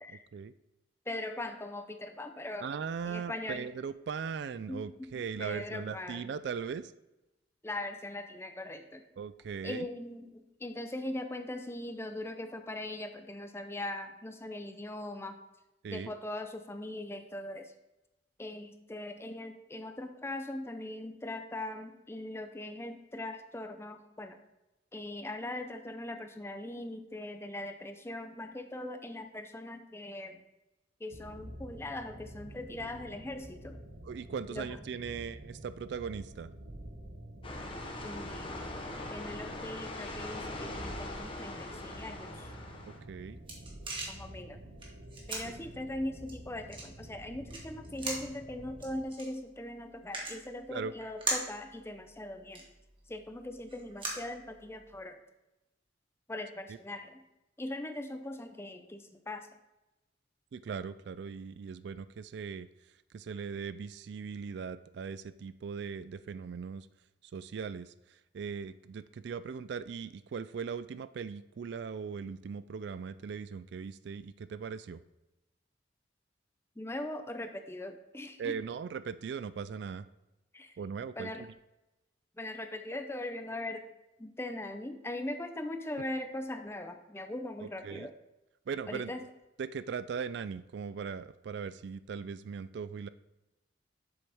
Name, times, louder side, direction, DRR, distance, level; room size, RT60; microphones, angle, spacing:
voice 1, 0.1-0.5 2.6-6.9 9.2-9.9 15.8-16.1 34.0-36.5 42.8-43.4 50.7-50.9 56.7-56.8 60.5-62.7 63.1-66.9 67.3-67.9 68.3-75.0 78.4-80.1 80.8-81.5 87.6-88.1 88.7-89.1 89.6-93.1, right 6 dB, 65° right, 14 dB, 0.3 m, -39 dB
voice 2, 1.1-2.7 3.0-3.7 4.7-4.8 5.4-6.3 7.6-9.0 9.6-15.4 15.9-17.7 18.4-24.4 24.9-30.4 31.0-33.8 34.5-34.8 38.0-38.6 39.1-42.5 44.1-44.6 45.3-52.6 53.1-55.2 56.3-57.2 57.6-59.5 76.8-78.6 80.5-80.7 81.2-81.5 82.4-83.8 84.2-88.1 88.9-89.2, left 1 dB, 15° left, 7 dB, 0.6 m, -40 dB
sound 1, 31.1-49.0, right 1 dB, 80° right, 1.0 m, -48 dB
sound 2, 37.4-43.0, left 2 dB, 30° left, 1.0 m, -41 dB
sound 3, 42.9-55.0, right 2 dB, 30° right, 1.6 m, -42 dB
7.7 x 7.0 x 3.5 m, 0.97 s
head